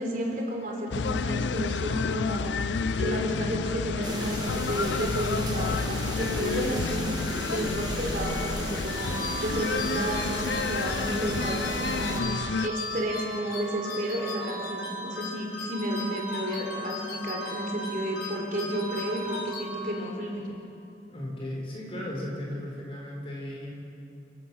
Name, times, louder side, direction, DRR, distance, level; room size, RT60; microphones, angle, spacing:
voice 1, 0.0-7.2 7.5-20.4, right 1 dB, 45° right, -1 dB, 4.1 m, -32 dB
sound 1, 0.9-12.7, left 5 dB, 85° left, 0.5 m, -30 dB
sound 2, 4.0-12.2, right 2 dB, 25° right, 1.5 m, -36 dB
sound 3, 9.0-20.2, left 1 dB, 65° left, 6.2 m, -36 dB
voice 2, 21.1-23.7, left 1 dB, 30° left, -2 dB, 5.3 m, -36 dB
29.5 x 16.0 x 6.4 m, 2.6 s
head